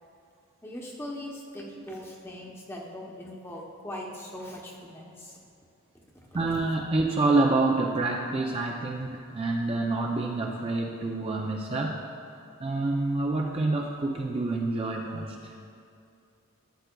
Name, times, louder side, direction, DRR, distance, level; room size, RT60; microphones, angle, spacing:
voice 1, 0.6-5.4 5.9-6.3, left 1 dB, 10° left, -1 dB, 0.8 m, -40 dB
voice 2, 6.3-12.0 12.6-15.6, right 2 dB, 25° right, 0 dB, 0.3 m, -27 dB
13.0 x 7.9 x 2.2 m, 2.5 s
head